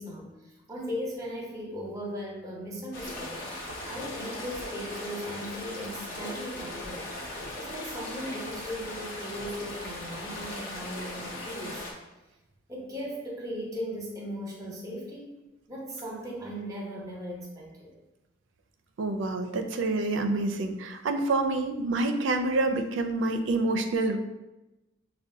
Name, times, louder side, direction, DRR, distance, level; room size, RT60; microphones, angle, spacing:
voice 1, 0.0-3.4 3.9-7.1 7.5-11.8 12.7-15.4 15.7-17.9, equal, 15° right, -2 dB, 0.8 m, -38 dB
sound 1, 2.9-11.9, left 1 dB, 45° left, 0.8 m, -38 dB
voice 2, 19.0-24.2, right 2 dB, 75° right, 6 dB, 0.4 m, -27 dB
6.3 x 2.2 x 2.6 m, 1.0 s
head